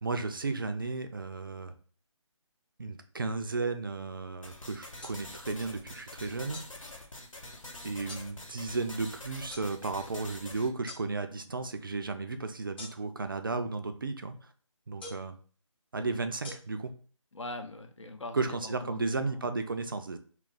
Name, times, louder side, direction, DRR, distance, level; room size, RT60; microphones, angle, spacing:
voice 1, 0.0-1.7 2.8-6.6 7.8-14.5 14.9-15.4 15.9-16.9 18.3-20.2, right 3 dB, 40° right, 8 dB, 0.4 m, -34 dB
sound 1, 4.4-10.7, left 1 dB, 90° left, 0.9 m, -46 dB
sound 2, 5.0-5.2 6.5-6.7 8.1-8.3 9.5-9.7 10.9-11.0 12.8-13.2 15.0-15.3 16.4-16.5, left 3 dB, 20° left, 0.6 m, -44 dB
voice 2, 17.3-19.4, left 2 dB, 70° left, 6 dB, 0.7 m, -42 dB
2.8 x 2.4 x 3.9 m, 0.42 s
figure-of-eight pair, 155°, 17 cm